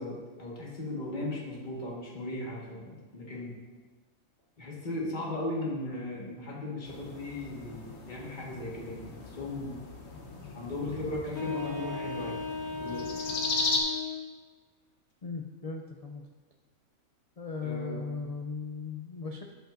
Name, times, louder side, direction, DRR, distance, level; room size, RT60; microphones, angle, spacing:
voice 1, 0.0-3.5 4.6-9.8 10.5-12.4 12.8-13.1 17.6-18.0, left 2 dB, 35° left, -4 dB, 1.7 m, -37 dB
sound 1, 6.8-13.8, left 3 dB, 55° left, 1.2 m, -37 dB
sound 2, 11.3-14.3, left 4 dB, 15° left, 0.8 m, -36 dB
voice 2, 15.2-16.2 17.4-19.5, left 4 dB, 80° left, 2 dB, 0.3 m, -37 dB
13.0 x 5.3 x 2.6 m, 1.3 s
omnidirectional pair, 1.4 m